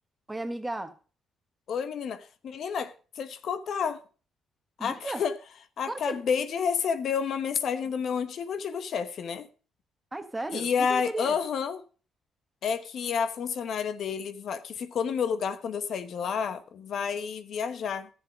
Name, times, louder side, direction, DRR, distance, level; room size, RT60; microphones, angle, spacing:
voice 1, 0.3-1.0 4.8-5.2 5.9-6.2 10.1-11.4, right 2 dB, 15° right, 1.5 m, -34 dB
voice 2, 1.7-4.0 4.8-5.3 5.8-9.5 10.5-11.8 12.6-18.1, left 6 dB, 65° left, 1.0 m, -30 dB
12.5 x 7.6 x 5.0 m
cardioid pair, 90°, 0 cm